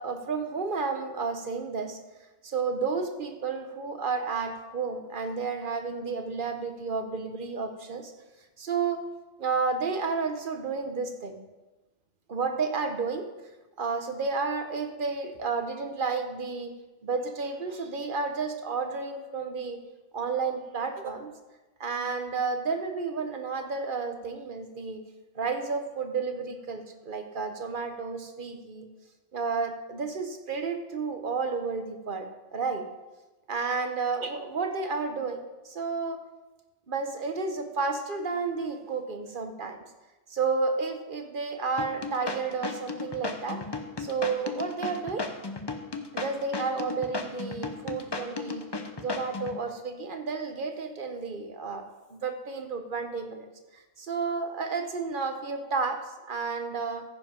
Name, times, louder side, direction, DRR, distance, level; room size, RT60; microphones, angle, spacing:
voice 1, 0.0-2.0 2.4-8.1 8.6-9.0 9.4-11.4 12.3-13.3 13.8-16.7 17.0-19.8 20.1-21.3 21.8-25.0 25.3-28.9 29.3-32.3 32.5-32.8 33.5-36.2 36.9-39.8 40.3-43.6 44.0-45.3 46.1-48.6 49.0-51.8 52.1-53.5 54.0-56.0 56.3-57.0, right 4 dB, 50° right, 6 dB, 1.1 m, -31 dB
sound 1, 41.8-49.6, left 3 dB, 30° left, 0.7 m, -34 dB
14.5 x 5.3 x 5.1 m, 1.1 s
omnidirectional pair, 1.1 m